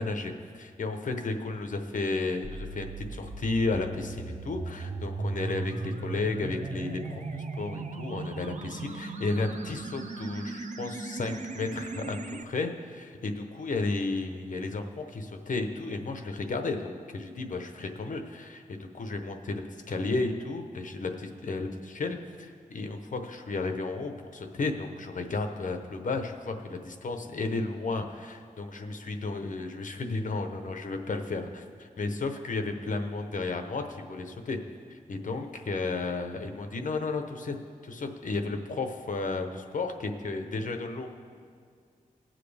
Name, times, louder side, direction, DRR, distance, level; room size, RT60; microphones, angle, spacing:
voice 1, 0.0-34.6 34.9-37.6 37.8-41.1, left 3 dB, 70° left, 6 dB, 0.9 m, -33 dB
sound 1, 2.4-12.4, right 3 dB, 60° right, 0.7 m, -37 dB
20.0 x 7.6 x 3.4 m, 2.2 s
wide cardioid pair, 140°, 14 cm